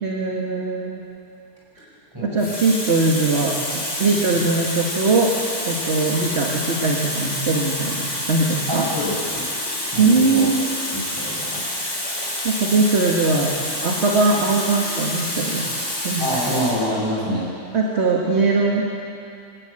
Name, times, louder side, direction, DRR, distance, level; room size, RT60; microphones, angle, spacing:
voice 1, 0.0-1.0 1.8-1.9 2.2-3.6 4.0-5.4 5.6-8.9 10.0-10.6 12.4-13.5 13.8-15.7 16.0-16.4 17.7-18.9, right 3 dB, 45° right, -1 dB, 1.9 m, -20 dB
Water tap faucet, 1.6-1.8 2.4-16.9 17.8-18.0, left 1 dB, 45° left, 5.0 m, -28 dB
voice 2, 8.7-9.4 9.9-10.5 10.9-11.6 16.2-17.5, equal, 15° right, -6 dB, 7.4 m, -26 dB
27.5 x 12.0 x 8.9 m, 2.5 s
omnidirectional pair, 1.7 m